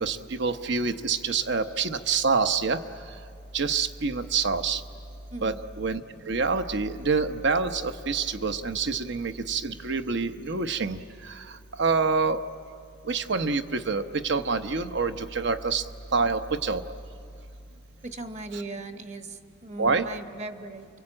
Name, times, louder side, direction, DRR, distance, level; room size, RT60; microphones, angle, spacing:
voice 1, 0.0-2.8 3.5-4.8 5.4-11.0 11.3-11.5 11.8-12.4 13.0-15.8 16.1-16.8 19.8-20.1, right 4 dB, 65° right, 9 dB, 0.9 m, -26 dB
voice 2, 5.3-5.6 18.0-20.9, right 2 dB, 35° right, 8 dB, 1.2 m, -38 dB
29.0 x 23.5 x 8.8 m, 2.6 s
head